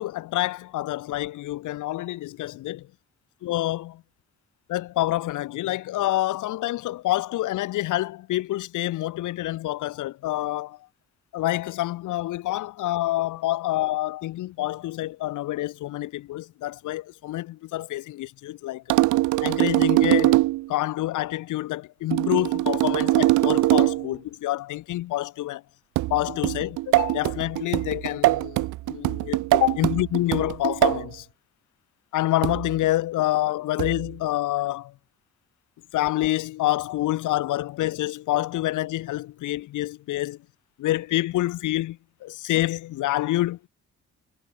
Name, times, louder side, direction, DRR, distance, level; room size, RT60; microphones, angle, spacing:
voice 1, 0.0-2.9 3.4-4.0 4.7-10.8 11.3-18.8 19.4-25.6 26.1-31.3 32.1-34.9 35.9-40.4 40.8-43.7, left 16 dB, 85° left, 1.7 m, -27 dB
sound 1, 18.9-20.7 22.1-24.1 26.0-31.1 32.4-32.8 33.8-34.1, right 18 dB, 80° right, 0.5 m, -22 dB
cardioid pair, 90°, 30 cm